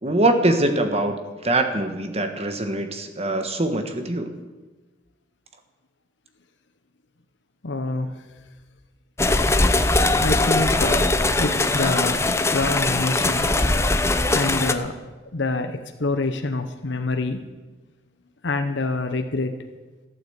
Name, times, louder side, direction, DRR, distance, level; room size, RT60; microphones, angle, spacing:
voice 1, 0.0-4.3, right 1 dB, 35° right, 7 dB, 1.4 m, -23 dB
voice 2, 7.6-8.3 10.2-13.5 14.3-17.5 18.4-19.6, left 2 dB, 75° left, 6 dB, 1.0 m, -27 dB
sound 1, 9.2-14.7, left 2 dB, 15° left, 0.7 m, -20 dB
15.5 x 9.1 x 8.1 m, 1.2 s
head